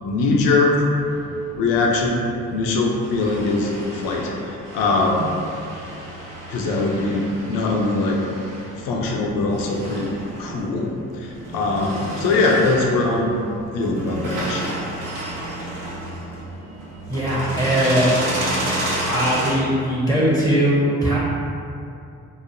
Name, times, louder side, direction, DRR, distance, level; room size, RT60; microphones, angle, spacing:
voice 1, 0.0-0.9 1.6-2.2 2.5-4.3 4.7-5.3 6.5-8.2 8.8-10.1 10.4-10.9 11.5-13.4 13.7-14.7, left 3 dB, 80° left, 0 dB, 0.5 m, -21 dB
sound 1, 0.9-19.5, right 1 dB, 70° right, 0.7 m, -32 dB
voice 2, 17.1-18.1 19.1-21.2, equal, 10° right, -7 dB, 0.6 m, -20 dB
3.0 x 2.1 x 2.5 m, 2.5 s
supercardioid pair, 50°, 33 cm